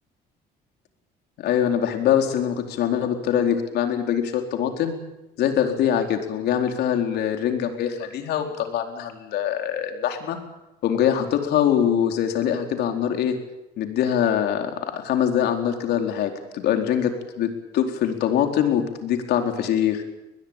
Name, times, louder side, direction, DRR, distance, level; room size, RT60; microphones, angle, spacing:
voice 1, 1.4-5.0 5.4-10.4 10.8-13.4 13.8-20.0, left 9 dB, 75° left, 5 dB, 4.2 m, -23 dB
22.0 x 20.5 x 9.1 m, 0.96 s
cardioid pair, 110°, 17 cm